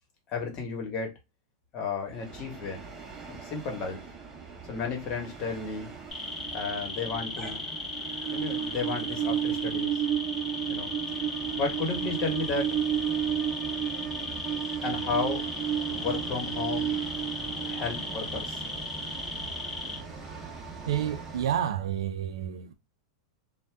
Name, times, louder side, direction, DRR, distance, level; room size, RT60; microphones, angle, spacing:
voice 1, 0.3-1.1 1.7-2.9 3.3-4.0 4.7-5.9 6.5-7.7 8.3-10.0 10.7-10.9 11.6-13.1 14.8-15.5 15.9-17.0 17.6-18.6, left 4 dB, 30° left, 1.2 m, -33 dB
Train, 2.1-21.6, right 9 dB, 20° right, 0.9 m, -34 dB
sound 1, 6.1-20.0, left 2 dB, 5° left, 0.9 m, -36 dB
voice 2, 20.9-22.7, right 10 dB, 90° right, 0.5 m, -30 dB
2.7 x 2.2 x 3.3 m
supercardioid pair, 155°, 3 cm